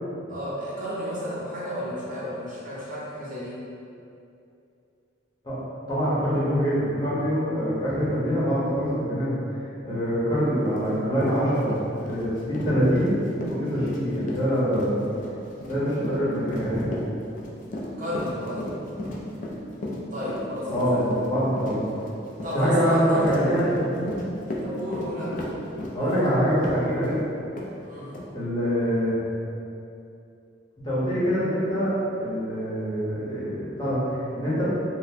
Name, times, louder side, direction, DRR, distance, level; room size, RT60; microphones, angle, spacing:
voice 1, 0.3-3.6 18.0-18.8 20.1-21.0 22.4-23.3 24.6-26.1 27.8-28.1, equal, 40° right, -8 dB, 0.7 m, -32 dB
voice 2, 5.9-9.3 9.8-11.7 12.0-15.1 15.6-16.9 20.7-21.8 22.5-23.9 25.9-27.2 28.3-29.2 30.8-34.6, equal, 20° left, -11 dB, 0.8 m, -24 dB
Run, 10.8-10.9 11.2-27.2 27.6-27.7 28.1-28.3, left 1 dB, 40° left, 0.3 m, -35 dB
3.8 x 2.0 x 2.7 m, 2.6 s
head